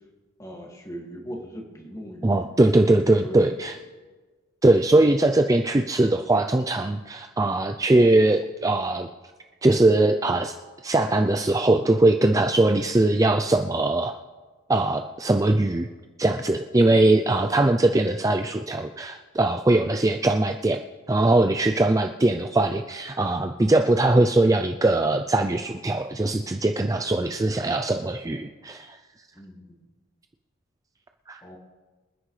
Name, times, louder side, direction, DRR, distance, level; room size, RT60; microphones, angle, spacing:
voice 1, 0.4-2.6 3.2-3.7 29.3-29.8 31.4-31.6, equal, 15° left, 0 dB, 2.2 m, -39 dB
voice 2, 2.2-3.8 4.6-9.1 9.6-10.5 10.8-14.1 14.7-15.9 16.2-20.8 21.1-29.0 31.3-31.4, right 2 dB, 15° right, 6 dB, 0.4 m, -21 dB
26.0 x 9.9 x 3.3 m, 1.3 s
head